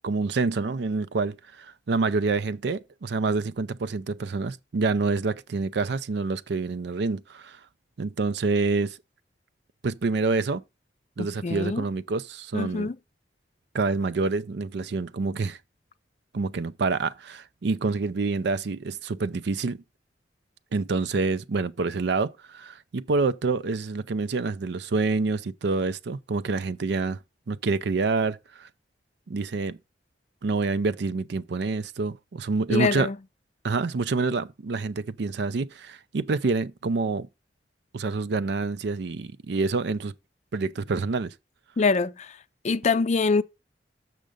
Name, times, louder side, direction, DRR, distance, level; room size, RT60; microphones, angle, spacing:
voice 1, 0.0-7.6 8.0-9.0 9.8-10.6 11.2-12.9 13.7-15.6 16.3-19.8 20.7-27.2 27.5-28.7 29.3-29.8 30.4-33.1 33.6-37.3 37.9-40.1 40.5-41.3, right 3 dB, 65° right, 0.5 m, -27 dB
voice 2, 11.2-11.8 12.5-13.0 32.7-33.2 41.8-42.4 42.6-43.4, left 4 dB, 40° left, 0.4 m, -24 dB
6.7 x 6.3 x 5.0 m
head